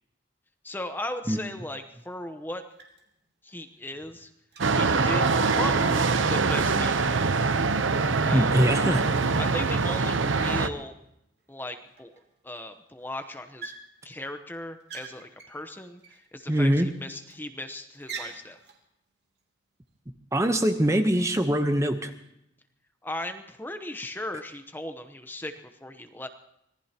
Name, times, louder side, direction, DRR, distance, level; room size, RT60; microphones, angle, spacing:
voice 1, 0.6-2.6 3.4-4.3 4.7-5.3 5.6-7.2 8.3-8.5 9.4-10.9 11.5-13.7 14.0-18.6 23.0-26.3, left 1 dB, 10° left, 7 dB, 0.9 m, -37 dB
sound 1, 1.4-1.5 2.0-2.4 2.7-3.2 3.5-7.1 7.5-9.2 9.5-10.5 11.1-11.2 11.4-11.5 11.9-12.6 12.9-13.1 13.6-14.2 14.6-16.3 16.7-17.5 17.9-18.8, right 5 dB, 60° right, 2.9 m, -46 dB
sound 2, 4.6-10.7, right 4 dB, 85° right, 0.8 m, -24 dB
voice 2, 8.3-9.1 16.5-16.9 20.3-22.1, right 1 dB, 15° right, 7 dB, 0.9 m, -23 dB
25.5 x 18.5 x 2.9 m, 0.79 s
head